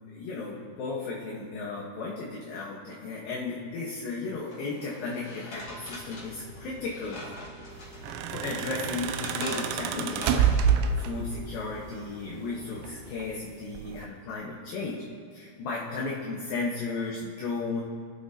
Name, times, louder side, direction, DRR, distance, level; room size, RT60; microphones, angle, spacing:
voice 1, 0.1-7.2 8.3-10.5 11.0-15.0 15.3-17.8, left 3 dB, 65° left, -4 dB, 2.6 m, -34 dB
sound 1, 4.5-8.2 8.6-10.7, left 1 dB, 35° left, 3.5 m, -43 dB
sound 2, 5.5-13.4, right 1 dB, 30° right, 3.9 m, -48 dB
sound 3, 7.9-11.4 12.6-13.3 13.7-14.0, right 7 dB, 80° right, 2.9 m, -27 dB
24.0 x 10.0 x 2.8 m, 2.1 s
omnidirectional pair, 5.4 m